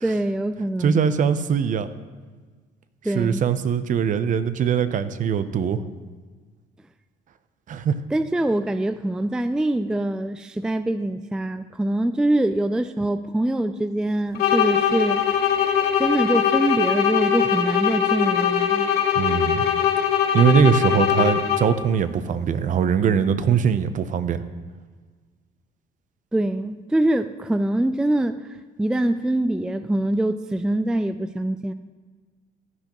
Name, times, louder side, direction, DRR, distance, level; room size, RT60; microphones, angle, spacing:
voice 1, 0.0-1.0 3.0-3.4 8.1-15.2 16.0-18.9 26.3-28.4 28.8-31.7, right 1 dB, 5° right, 11 dB, 0.3 m, -24 dB
voice 2, 0.8-1.9 3.0-5.8 7.7-8.0 19.1-19.7 20.3-24.4, right 7 dB, 50° right, 12 dB, 0.7 m, -21 dB
sound 1, 14.4-21.9, left 9 dB, 70° left, 1.1 m, -21 dB
15.5 x 10.5 x 3.0 m, 1.4 s
cardioid pair, 110°, 17 cm